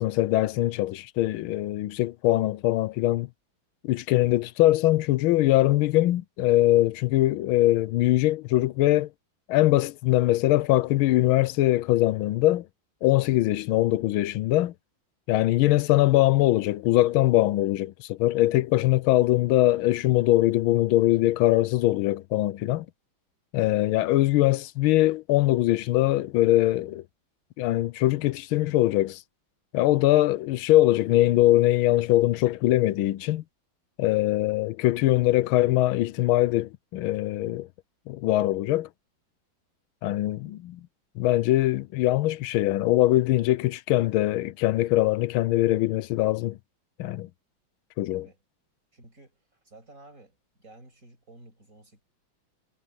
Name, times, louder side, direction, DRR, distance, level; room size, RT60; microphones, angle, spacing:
voice 1, 0.0-3.3 3.8-9.1 9.5-12.7 13.0-14.7 15.3-22.9 23.5-27.0 27.6-29.2 29.7-33.4 34.0-37.7 38.1-38.9 40.0-40.8 41.2-46.6 47.0-47.3 48.0-48.3, left 16 dB, 90° left, 1.5 m, -22 dB
voice 2, 48.9-49.4 49.6-52.0, right 2 dB, 40° right, 7.3 m, -52 dB
omnidirectional pair, 2.2 m